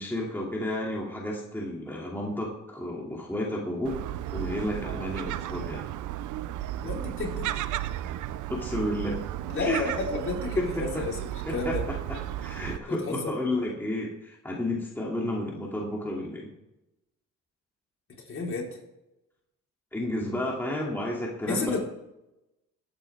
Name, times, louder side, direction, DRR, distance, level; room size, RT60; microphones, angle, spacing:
voice 1, 0.0-4.0 4.3-5.8 8.5-9.2 9.6-9.9 10.6-10.7 11.4-11.8 12.1-16.5 19.9-21.8, left 1 dB, 5° left, -3 dB, 2.8 m, -32 dB
Gull seagull, 3.9-12.8, right 13 dB, 80° right, 0.6 m, -34 dB
voice 2, 6.8-7.5 9.5-11.8 12.7-13.3 18.3-18.8 21.5-21.8, left 3 dB, 45° left, -2 dB, 4.4 m, -31 dB
20.5 x 9.1 x 3.6 m, 0.91 s
cardioid pair, 90°, 30 cm